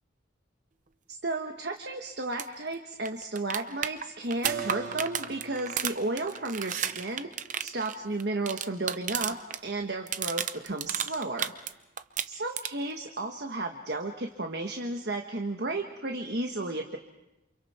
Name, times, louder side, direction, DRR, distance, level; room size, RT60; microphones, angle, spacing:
voice 1, 1.1-7.3 7.6-9.4 9.6-11.5 12.3-17.0, right 2 dB, 55° right, 3 dB, 1.4 m, -33 dB
sound 1, 2.3-2.5 2.7-2.8 3.1-9.6 9.9-11.7 12.0-12.9 15.0-15.1, right 9 dB, 40° right, 0.7 m, -33 dB
Keyboard (musical), 4.4-10.0, right 6 dB, 70° right, 4.7 m, -44 dB
29.0 x 28.0 x 4.4 m, 0.94 s
head